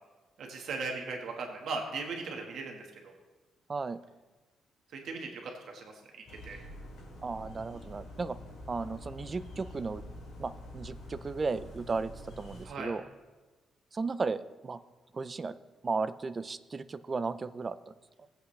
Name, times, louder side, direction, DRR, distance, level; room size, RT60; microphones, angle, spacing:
voice 1, 0.4-3.1 4.9-6.0 6.3-6.6 12.6-12.9, right 4 dB, 60° right, 2 dB, 1.5 m, -38 dB
sound 1, 6.3-12.6, left 1 dB, 55° left, 3.1 m, -46 dB
voice 2, 7.2-8.4 8.7-10.0 10.4-12.1 12.4-13.0 13.9-14.8 15.1-15.6 15.8-17.8, right 4 dB, 25° right, 13 dB, 0.4 m, -35 dB
19.0 x 8.1 x 3.2 m, 1.2 s
cardioid pair, 170°, 0 cm